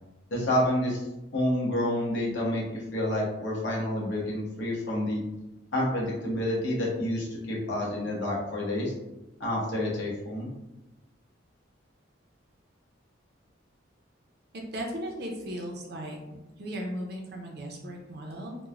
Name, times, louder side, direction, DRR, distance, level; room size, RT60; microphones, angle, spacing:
voice 1, 0.3-1.0 1.3-5.2 5.7-8.9 9.4-10.5, left 1 dB, 65° left, -4 dB, 0.9 m, -29 dB
voice 2, 14.7-16.2 16.6-18.6, equal, 55° right, 1 dB, 0.6 m, -36 dB
3.1 x 2.1 x 2.4 m, 0.98 s
head